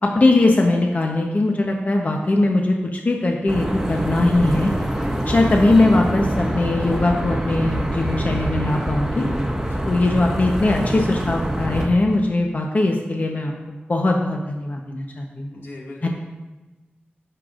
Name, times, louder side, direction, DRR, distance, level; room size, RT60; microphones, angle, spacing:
voice 1, 0.0-4.7 5.3-9.3 9.9-15.5 16.0-16.1, left 2 dB, 45° left, 1 dB, 0.9 m, -20 dB
sound 1, 3.5-11.9, right 1 dB, 10° right, 1.5 m, -25 dB
voice 2, 15.5-16.1, left 2 dB, 85° left, -4 dB, 2.0 m, -39 dB
16.0 x 6.7 x 2.5 m, 1.2 s
wide cardioid pair, 80°, 4 cm